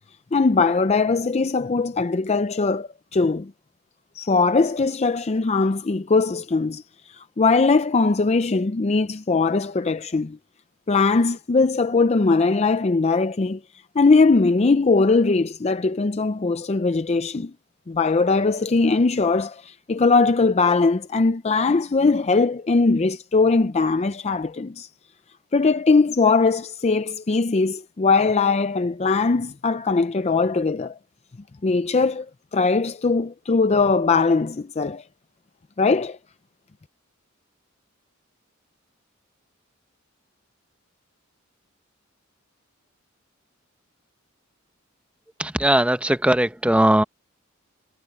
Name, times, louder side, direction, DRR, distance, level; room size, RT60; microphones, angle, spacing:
voice 1, 0.3-3.5 4.2-6.8 7.1-10.4 10.9-13.6 14.0-17.5 17.9-24.9 25.5-31.0 31.6-32.3 32.5-35.0 35.8-36.2, left 4 dB, 30° left, 0.5 m, -20 dB
voice 2, 45.4-47.0, right 1 dB, 5° right, 0.7 m, -19 dB
head